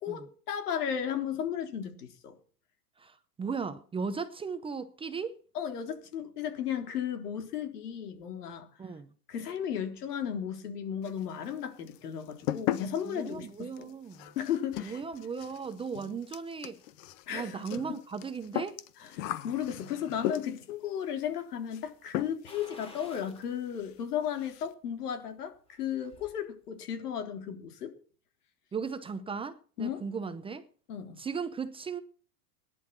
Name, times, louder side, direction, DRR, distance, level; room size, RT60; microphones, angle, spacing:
voice 1, 0.0-2.4 5.5-8.7 9.3-13.9 14.4-15.0 17.3-18.0 19.0-27.9 29.8-30.0 30.9-31.2, left 9 dB, 80° left, 3.7 m, -35 dB
voice 2, 3.0-5.4 8.8-9.1 13.0-14.3 14.8-16.8 17.3-18.8 28.7-30.6 31.2-32.0, right 5 dB, 10° right, 0.7 m, -37 dB
sound 1, 11.0-11.6 11.9-20.8 21.7-21.9 22.1-22.6 22.9-23.0 23.4-23.5 23.7-23.9 24.2-24.7, left 13 dB, 55° left, 1.4 m, -38 dB
sound 2, 22.5-23.5 23.9-24.0 25.5-26.3 26.7-26.8, left 2 dB, 10° left, 3.9 m, -51 dB
18.0 x 11.0 x 6.1 m
supercardioid pair, 140°, 45 cm